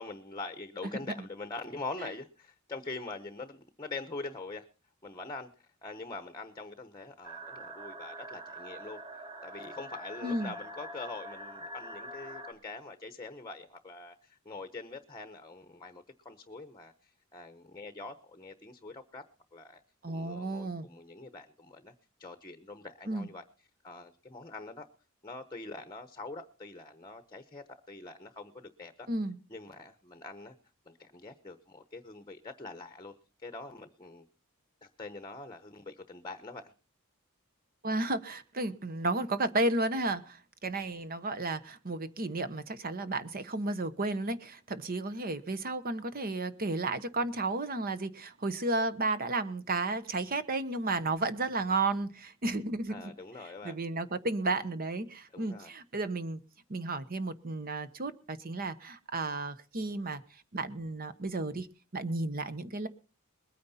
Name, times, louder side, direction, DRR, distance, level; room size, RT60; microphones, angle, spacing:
voice 1, 0.0-4.7 5.0-5.5 5.8-9.0 9.4-19.2 19.5-19.8 20.1-21.9 22.2-23.4 23.8-24.9 25.2-29.1 29.5-30.5 30.9-34.3 34.8-36.7 52.9-53.8 55.3-55.7, left 3 dB, 20° left, 10 dB, 0.9 m, -44 dB
sound 1, 7.2-12.5, right 1 dB, 25° right, 1.9 m, -44 dB
voice 2, 10.2-10.5 20.0-20.9 23.1-23.3 29.1-29.4 37.8-53.0 53.6-56.4 56.7-60.2 60.5-61.7 61.9-62.9, right 2 dB, 45° right, 13 dB, 1.0 m, -33 dB
21.0 x 9.4 x 4.2 m, 0.35 s
head